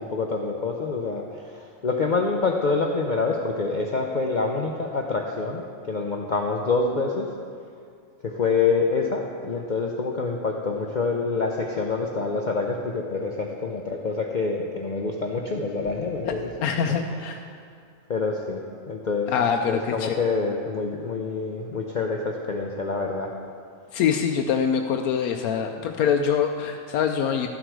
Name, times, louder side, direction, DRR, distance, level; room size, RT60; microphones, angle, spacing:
voice 1, 0.0-7.3 8.2-16.5 16.8-17.6 18.1-18.6 18.9-19.3 19.6-23.3, left 4 dB, 50° left, 1 dB, 0.6 m, -26 dB
voice 2, 16.6-17.4 19.3-20.1 23.9-27.5, left 7 dB, 85° left, 4 dB, 1.1 m, -24 dB
13.0 x 7.8 x 4.7 m, 2.3 s
omnidirectional pair, 1.5 m